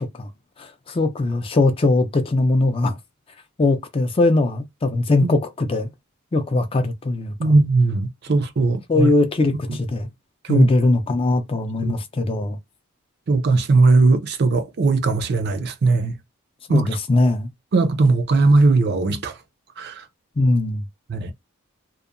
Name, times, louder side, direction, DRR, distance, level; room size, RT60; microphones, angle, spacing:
voice 1, 0.6-2.9 3.6-5.9 6.3-7.5 8.9-10.1 10.5-12.6 16.7-17.5 20.4-20.8, left 2 dB, 25° left, 0.3 m, -20 dB
voice 2, 7.4-9.1 10.4-10.7 11.8-11.9 13.3-16.1 16.7-16.9 17.7-19.4 19.8-20.1 21.1-21.3, right 3 dB, 45° right, 0.4 m, -18 dB
2.8 x 2.0 x 2.4 m
head